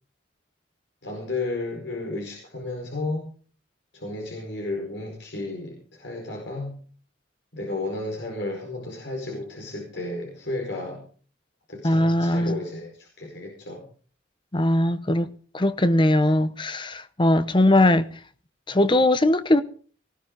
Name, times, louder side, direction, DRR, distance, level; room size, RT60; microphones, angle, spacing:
voice 1, 1.0-3.3 3.9-6.8 7.5-11.0 11.7-13.8, left 2 dB, 65° left, 4.8 m, -33 dB
voice 2, 11.8-12.6 14.5-18.1 18.7-19.6, left 1 dB, 25° left, 0.8 m, -20 dB
19.5 x 15.5 x 3.9 m
head